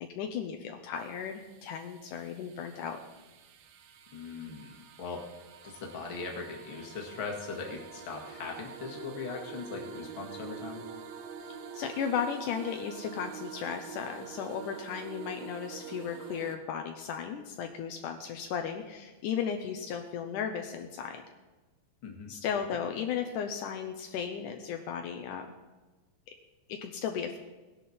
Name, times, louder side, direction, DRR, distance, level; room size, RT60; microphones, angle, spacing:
voice 1, 0.0-3.0 11.4-21.2 22.3-25.5 26.7-27.4, left 7 dB, 85° left, 4 dB, 1.8 m, -35 dB
sound 1, 1.0-16.6, right 7 dB, 85° right, 3.1 m, -46 dB
voice 2, 4.1-5.2 5.6-10.9 22.0-22.3, left 4 dB, 40° left, 0 dB, 2.0 m, -40 dB
18.5 x 11.5 x 4.3 m, 1.2 s
omnidirectional pair, 4.8 m